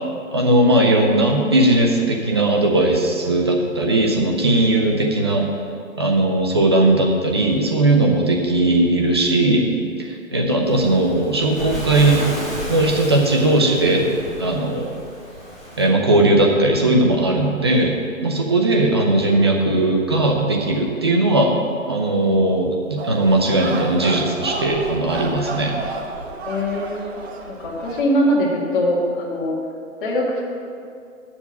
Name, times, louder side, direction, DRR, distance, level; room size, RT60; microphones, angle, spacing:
voice 1, 0.3-5.5 6.0-9.7 10.0-12.2 12.7-14.1 14.4-14.9 15.8-17.9 18.2-21.5 21.9-25.7, right 2 dB, 20° right, 0 dB, 0.5 m, -18 dB
Waves surf, 10.6-15.9, equal, ahead, 2.2 m, -32 dB
voice 2, 19.1-19.5 26.5-27.2 27.5-29.5 30.0-30.4, equal, 40° left, -3 dB, 2.1 m, -22 dB
sound 1, 23.0-28.0, right 3 dB, 50° right, 1.1 m, -31 dB
8.0 x 7.1 x 5.9 m, 2.4 s
hypercardioid pair, 155°, 41 cm